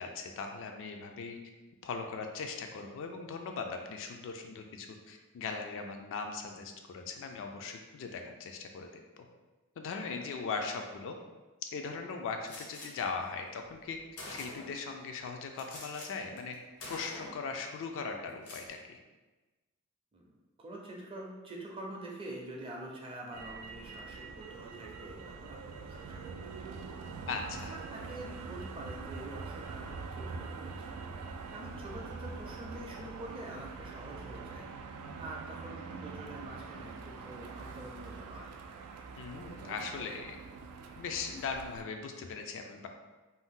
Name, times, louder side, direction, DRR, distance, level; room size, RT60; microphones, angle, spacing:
voice 1, 0.0-1.4 1.8-9.0 9.8-11.2 11.7-14.0 14.3-16.6 16.9-19.0 27.3-27.7 39.2-40.4 41.0-42.9, left 4 dB, 60° left, 4 dB, 0.3 m, -39 dB
Gunshot gunfire, 12.5-12.9 13.7-13.8 14.2-14.8 15.6-16.1 16.4-16.5 16.8-17.5 18.3-18.7, left 2 dB, 85° left, 0.7 m, -45 dB
voice 2, 20.6-26.8 27.7-30.9 31.2-34.7 35.2-38.6, right 1 dB, 25° right, -2 dB, 0.5 m, -46 dB
Motor vehicle (road), 23.3-41.8, right 4 dB, 90° right, 0.3 m, -44 dB
2.7 x 2.0 x 3.6 m, 1.2 s
head